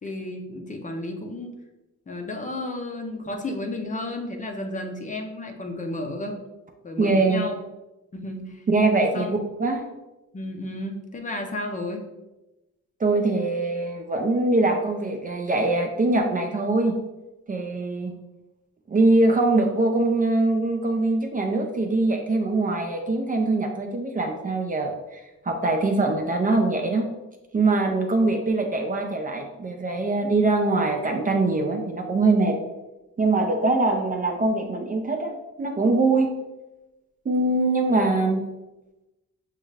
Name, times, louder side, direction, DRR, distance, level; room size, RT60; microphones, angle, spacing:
voice 1, 0.0-1.5 2.1-6.4 6.8-7.5 8.1-8.7 9.1-9.3 10.3-12.1 38.2-38.4, left 2 dB, 25° left, 3 dB, 0.5 m, -32 dB
voice 2, 7.0-7.4 8.7-9.9 13.0-17.0 17.5-18.1 18.9-27.1 27.5-32.6 33.2-35.3 35.6-36.3 37.3-38.4, right 2 dB, 25° right, 3 dB, 0.4 m, -23 dB
6.4 x 2.4 x 3.1 m, 1.0 s
cardioid pair, 130°, 31 cm